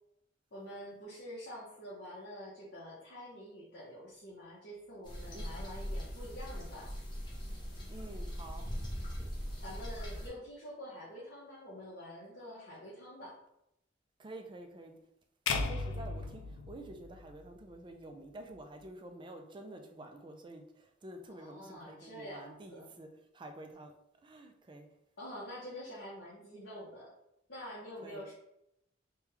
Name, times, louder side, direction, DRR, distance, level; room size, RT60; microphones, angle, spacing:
voice 1, 0.5-6.9 9.6-13.4 21.4-22.9 25.2-27.1 27.5-28.3, equal, 60° left, 0.9 m, -47 dB
sound 1, 5.0-10.3, equal, 25° left, 0.7 m, -40 dB
voice 2, 7.9-8.7 14.2-15.0 15.5-23.1 23.3-23.9 24.2-24.9 28.0-28.2, right 1 dB, 25° right, 0.3 m, -49 dB
sound 2, 15.5-17.7, left 4 dB, 85° left, 0.3 m, -36 dB
3.3 x 2.2 x 3.2 m
head